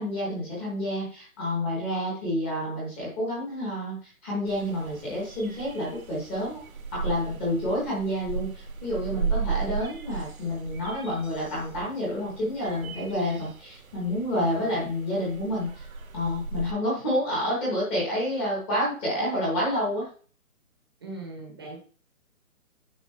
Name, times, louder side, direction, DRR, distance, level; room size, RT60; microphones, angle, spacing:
voice 1, 0.0-6.6 6.9-15.9 16.1-20.1, left 1 dB, 5° left, -6 dB, 1.0 m, -29 dB
sound 1, 4.5-16.7, right 6 dB, 80° right, 1.6 m, -36 dB
voice 2, 14.3-14.8 21.0-21.8, right 3 dB, 15° right, 0 dB, 0.9 m, -40 dB
9.3 x 5.2 x 3.1 m, 0.42 s
hypercardioid pair, 175°, 42 cm